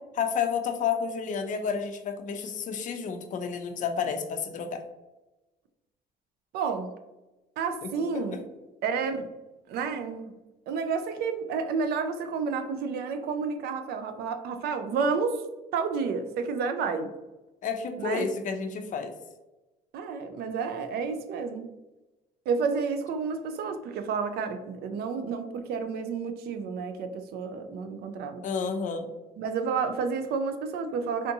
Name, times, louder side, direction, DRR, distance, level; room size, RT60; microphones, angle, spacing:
voice 1, 0.1-4.8 7.8-7.9 17.6-19.1 28.4-29.1, left 6 dB, 50° left, 7 dB, 0.5 m, -30 dB
voice 2, 6.5-6.9 7.6-8.4 8.8-9.3 9.7-10.3 10.7-15.4 15.7-17.1 18.0-18.2 19.9-21.7 22.5-28.4 29.4-31.3, right 5 dB, 70° right, 8 dB, 0.4 m, -30 dB
3.5 x 2.6 x 2.7 m, 1.1 s
cardioid pair, 110°, 17 cm